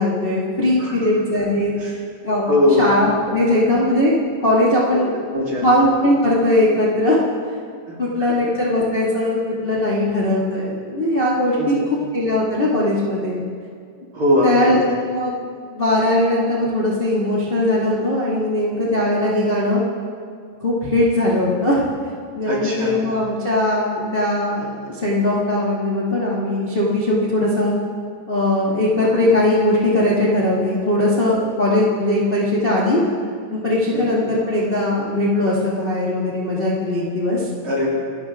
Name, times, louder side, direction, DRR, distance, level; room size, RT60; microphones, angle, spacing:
voice 1, 0.0-1.9 2.2-2.5 2.8-4.1 4.4-5.1 5.6-7.2 8.0-11.7 12.1-13.4 14.4-15.3 15.6-19.8 20.6-21.8 22.3-27.7 28.3-33.0 33.5-37.5, left 1 dB, 30° left, -6 dB, 1.1 m, -19 dB
voice 2, 2.5-2.9 4.9-5.0 5.3-5.7 7.9-8.0 8.3-8.4 11.6-11.8 14.1-14.7 22.5-23.0 29.0-29.2 33.9-34.1 37.6-37.9, left 1 dB, 30° right, -6 dB, 4.1 m, -20 dB
27.5 x 12.0 x 3.8 m, 2.2 s
omnidirectional pair, 5.0 m